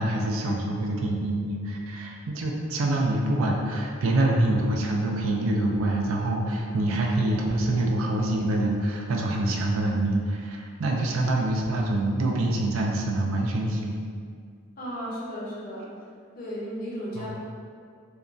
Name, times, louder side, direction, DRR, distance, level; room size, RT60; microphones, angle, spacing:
voice 1, 0.0-14.0 17.2-17.3, right 1 dB, 80° right, 0 dB, 0.4 m, -25 dB
voice 2, 14.8-15.9 16.4-17.3, equal, 45° left, -6 dB, 0.6 m, -34 dB
2.8 x 2.1 x 2.5 m, 2.1 s
head